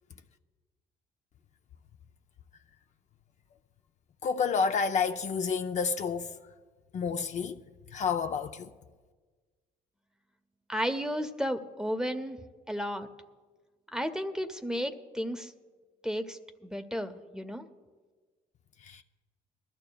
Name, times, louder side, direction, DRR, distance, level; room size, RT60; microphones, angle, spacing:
voice 1, 4.2-6.3 6.9-7.6 7.9-8.7 18.8-19.0, left 5 dB, 45° left, 0.5 m, -29 dB
voice 2, 10.7-12.4 12.7-13.1 13.9-15.5 16.0-17.6, equal, 5° right, 0.7 m, -33 dB
22.0 x 13.5 x 2.3 m
cardioid pair, 110°, 17 cm